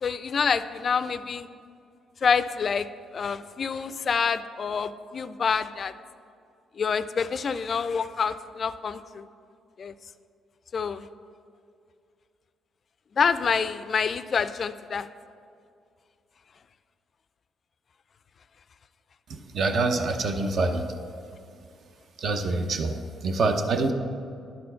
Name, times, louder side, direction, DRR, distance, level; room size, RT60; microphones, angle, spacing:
voice 1, 0.0-1.5 2.2-2.9 3.1-5.9 6.8-9.2 9.8-9.9 10.7-11.1 13.2-15.1 20.4-20.5, left 6 dB, 45° left, 13 dB, 0.3 m, -27 dB
voice 2, 19.3-21.0 22.2-23.9, right 3 dB, 60° right, 6 dB, 0.7 m, -26 dB
10.5 x 4.3 x 5.5 m, 2.4 s
cardioid pair, 90°, 0 cm